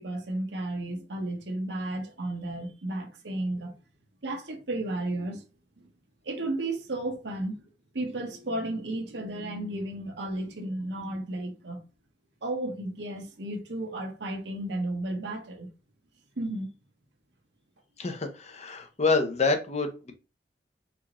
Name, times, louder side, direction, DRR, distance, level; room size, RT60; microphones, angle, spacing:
voice 1, 0.0-3.7 4.2-5.4 5.8-5.9 6.2-7.7 7.9-11.8 12.4-15.7 16.4-16.7, right 1 dB, 70° right, 0.9 m, -33 dB
voice 2, 18.0-20.1, left 3 dB, 40° left, 0.6 m, -27 dB
4.5 x 2.6 x 2.9 m
head